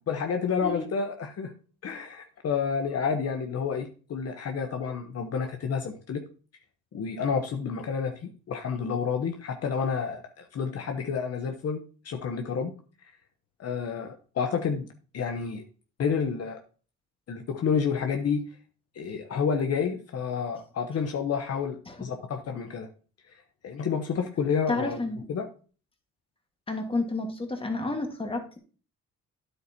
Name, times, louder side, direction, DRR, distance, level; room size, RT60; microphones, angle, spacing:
voice 1, 0.1-1.5 1.8-6.2 6.9-12.7 13.6-14.9 15.1-15.6 16.0-16.6 17.3-18.4 18.9-22.9 23.6-25.0 25.3-25.5, left 6 dB, 55° left, 5 dB, 1.0 m, -29 dB
voice 2, 24.7-25.2 26.7-28.6, left 2 dB, 20° left, 4 dB, 1.8 m, -30 dB
9.7 x 7.9 x 2.9 m, 0.37 s
cardioid pair, 90°, 30 cm